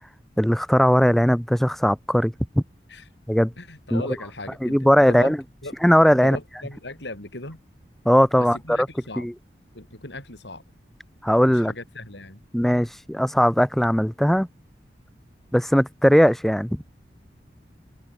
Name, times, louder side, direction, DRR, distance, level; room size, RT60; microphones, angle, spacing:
voice 1, 0.4-2.6 3.3-3.5 3.9-4.0 4.6-5.4 5.8-6.4 8.1-8.6 9.2-9.3 11.2-11.7 12.5-14.5 15.5-16.8, equal, ahead, 0.4 m, -19 dB
voice 2, 3.6-5.4 5.6-5.7 6.1-7.6 8.4-9.3 9.7-10.6 11.5-12.4, left 2 dB, 85° left, 7.1 m, -37 dB
head